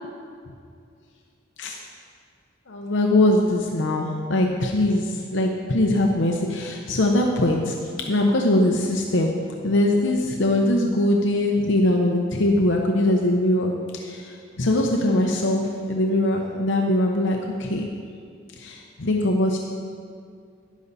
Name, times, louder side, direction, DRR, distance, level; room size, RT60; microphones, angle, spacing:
voice 1, 2.7-7.7 8.1-9.3 9.6-17.9 18.6-19.6, left 1 dB, 65° left, 1 dB, 0.8 m, -22 dB
12.0 x 10.5 x 4.1 m, 2.3 s
head